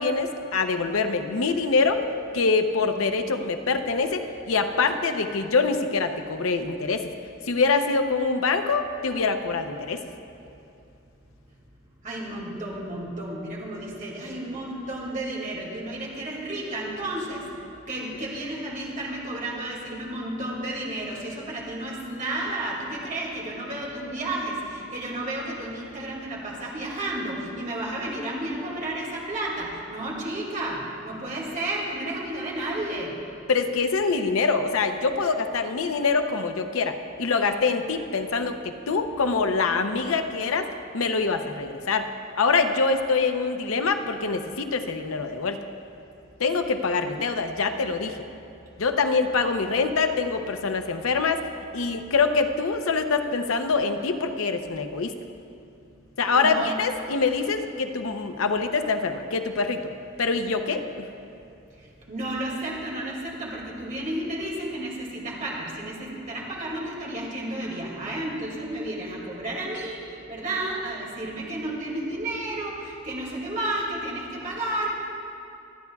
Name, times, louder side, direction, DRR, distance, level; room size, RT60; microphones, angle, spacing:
voice 1, 0.0-2.0 2.3-7.1 7.5-10.0 33.5-36.9 37.2-40.7 40.9-42.1 42.4-45.6 46.4-48.2 48.8-51.4 51.7-55.1 56.2-59.8 60.2-61.1, left 4 dB, 90° left, 7 dB, 0.7 m, -24 dB
voice 2, 12.0-17.4 17.9-33.1 56.3-56.7 62.1-74.9, right 1 dB, 40° right, -3 dB, 2.3 m, -32 dB
25.0 x 9.5 x 2.3 m, 2.7 s
head